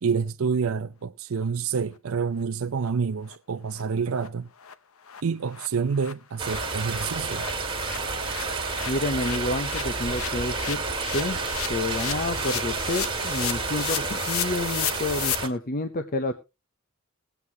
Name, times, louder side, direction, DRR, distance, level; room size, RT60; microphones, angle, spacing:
voice 1, 0.0-4.5 5.2-7.5, right 5 dB, 75° right, 0.5 m, -28 dB
sound 1, 2.4-2.5 2.8-2.9 3.3-3.4 3.7-3.8 4.2-4.3 4.6-4.7 5.1-5.2 5.5-15.4, left 10 dB, 80° left, 0.8 m, -35 dB
sound 2, 6.4-15.5, right 3 dB, 25° right, 1.8 m, -30 dB
voice 2, 8.9-10.8 11.1-11.4 11.7-16.3, left 2 dB, 45° left, 0.7 m, -29 dB
20.5 x 8.0 x 2.8 m
head